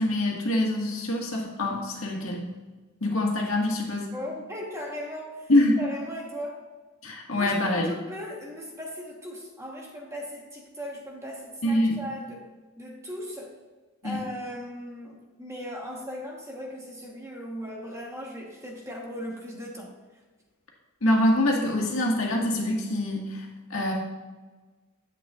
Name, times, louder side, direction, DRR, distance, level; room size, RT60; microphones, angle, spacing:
voice 1, 0.0-2.4 3.0-4.1 5.5-5.8 7.0-7.9 11.6-12.0 14.0-14.2 21.0-23.9, left 1 dB, 80° left, -1 dB, 1.8 m, -25 dB
voice 2, 4.1-5.5 5.8-6.6 7.3-12.4 12.8-13.6 14.0-19.9, equal, 15° right, 0 dB, 1.2 m, -38 dB
10.5 x 7.9 x 2.5 m, 1.3 s
head